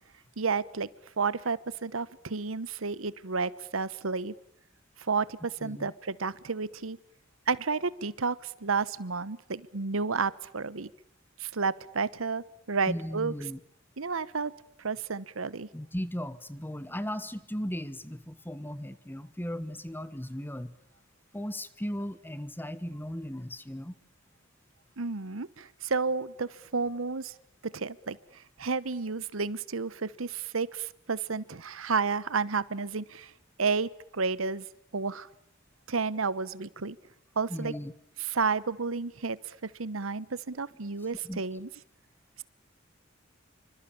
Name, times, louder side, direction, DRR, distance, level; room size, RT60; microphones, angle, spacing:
voice 1, 0.4-0.9 1.2-4.3 5.1-7.0 7.5-10.9 11.4-13.3 14.0-14.5 14.8-15.7 25.0-27.3 27.6-28.2 28.6-33.3 33.6-34.7 34.9-35.3 35.9-37.0 37.4-37.7 38.2-41.7, right 4 dB, 90° right, 18 dB, 1.0 m, -31 dB
voice 2, 5.6-5.9 12.9-13.6 15.7-20.7 21.3-23.9 37.5-37.9 41.2-41.4, equal, 10° left, 14 dB, 1.5 m, -36 dB
27.0 x 25.5 x 8.6 m, 0.69 s
head